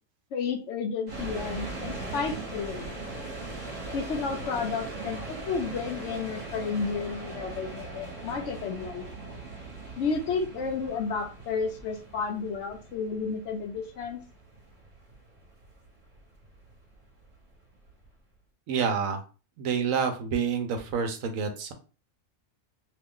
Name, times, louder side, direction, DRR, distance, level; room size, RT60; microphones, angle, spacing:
voice 1, 0.3-2.9 3.9-9.0 10.0-14.2, left 5 dB, 65° left, 5 dB, 0.8 m, -32 dB
sound 1, 1.1-18.1, right 2 dB, 30° right, 1.1 m, -40 dB
voice 2, 18.7-19.2 19.6-21.7, right 6 dB, 70° right, 5 dB, 1.0 m, -28 dB
2.9 x 2.3 x 3.6 m, 0.35 s
omnidirectional pair, 1.5 m